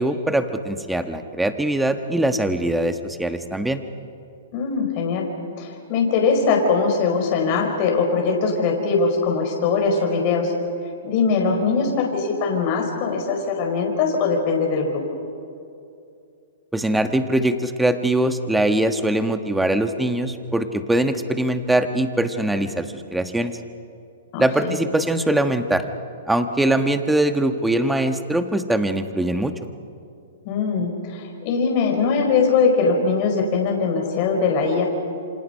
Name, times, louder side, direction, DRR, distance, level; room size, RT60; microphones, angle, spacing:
voice 1, 0.0-3.8 16.7-22.9 23.1-23.5 24.4-25.8 26.3-29.5, right 1 dB, 5° right, 8 dB, 1.3 m, -22 dB
voice 2, 4.5-5.3 5.6-10.5 11.0-15.0 24.3-24.8 30.4-34.8, left 4 dB, 45° left, 1 dB, 4.6 m, -21 dB
28.0 x 26.5 x 5.7 m, 2.5 s
hypercardioid pair, 135°, 0 cm